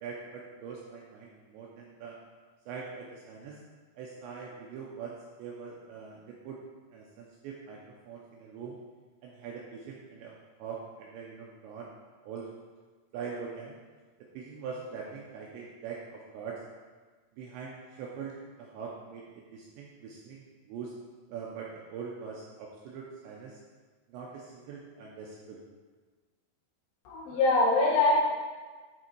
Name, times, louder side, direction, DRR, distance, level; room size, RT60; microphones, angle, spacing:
voice 1, 0.0-2.2 2.7-3.6 4.0-6.6 6.9-7.8 8.1-8.8 9.2-11.9 12.2-12.5 13.1-13.7 14.3-16.6 17.4-20.9 21.3-23.6 24.1-25.6, right 6 dB, 80° right, -2 dB, 2.7 m, -42 dB
voice 2, 27.1-28.2, left 2 dB, 75° left, -5 dB, 3.9 m, -23 dB
9.6 x 3.7 x 4.5 m, 1.4 s
omnidirectional pair, 5.8 m